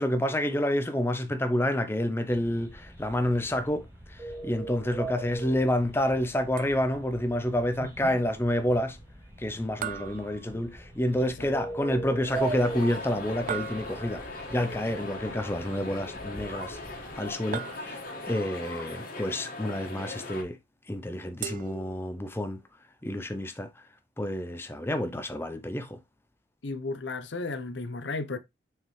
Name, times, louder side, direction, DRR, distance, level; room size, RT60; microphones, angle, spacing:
voice 1, 0.0-9.0 9.4-16.8 17.2-20.6 20.9-22.6 23.0-23.7 24.2-26.0, left 1 dB, 10° left, 0.6 m, -29 dB
sound 1, 2.3-17.1, right 3 dB, 15° right, 1.8 m, -41 dB
sound 2, 6.6-7.2 9.8-11.1 13.5-14.4 17.5-18.3 21.4-22.4, right 9 dB, 40° right, 0.3 m, -39 dB
voice 2, 7.8-8.1 11.2-11.5 25.1-25.2 26.6-28.4, left 3 dB, 65° left, 0.8 m, -35 dB
sound 3, 12.3-20.4, left 2 dB, 45° left, 1.7 m, -39 dB
6.2 x 4.7 x 3.2 m
head